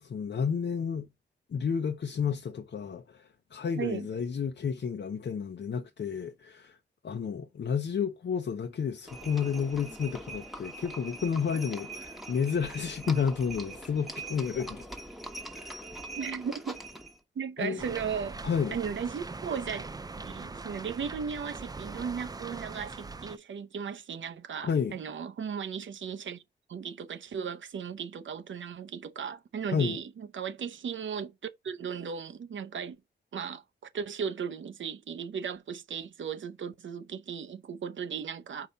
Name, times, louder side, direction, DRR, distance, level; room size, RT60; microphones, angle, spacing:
voice 1, 0.0-1.1 1.5-6.8 7.0-14.8 15.5-15.9 17.6-17.8 18.4-18.8 24.6-25.0 29.7-30.0, left 6 dB, 70° left, 0.7 m, -31 dB
Livestock farm animals working animals, 9.1-17.2, right 2 dB, ahead, 1.0 m, -42 dB
voice 2, 16.2-16.8 17.4-18.4 18.7-19.9 20.2-26.4 26.7-33.0 33.3-33.6 33.9-38.7, right 7 dB, 80° right, 0.8 m, -36 dB
sound 1, 17.8-23.4, right 3 dB, 20° right, 0.4 m, -41 dB
4.8 x 3.9 x 5.5 m
wide cardioid pair, 90°, 19 cm